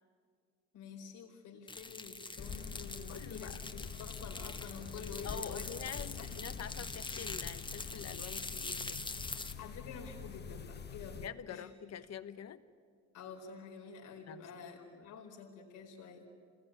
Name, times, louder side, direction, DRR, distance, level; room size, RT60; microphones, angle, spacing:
voice 1, 0.7-6.5 9.6-11.7 13.1-16.3, left 5 dB, 90° left, 1 dB, 4.6 m, -49 dB
sound 1, 1.7-9.5, left 3 dB, 15° left, 1.4 m, -44 dB
sound 2, 2.4-11.3, left 6 dB, 35° left, 1.1 m, -46 dB
voice 2, 3.1-3.9 5.2-9.0 11.2-12.6 14.3-14.5 14.9-15.1, left 8 dB, 60° left, 11 dB, 1.3 m, -46 dB
28.0 x 20.5 x 9.7 m, 2.1 s
cardioid pair, 90°, 30 cm